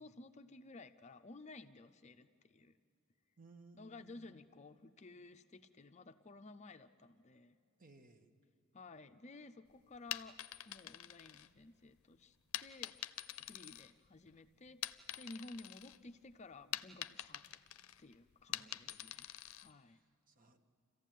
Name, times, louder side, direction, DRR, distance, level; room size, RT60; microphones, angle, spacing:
voice 1, 0.0-2.7 3.7-7.6 8.7-10.4 10.7-12.4 12.6-13.0 13.4-17.6 18.0-20.0, left 2 dB, 35° left, 10 dB, 0.5 m, -55 dB
voice 2, 3.4-4.4 7.8-8.3 18.5-19.4 19.8-20.6, right 3 dB, 40° right, 7 dB, 1.2 m, -63 dB
sound 1, 9.9-11.9 12.5-14.3 14.7-16.0 16.3-19.7, left 13 dB, 75° left, 0.6 m, -46 dB
28.0 x 15.0 x 9.2 m, 2.4 s
head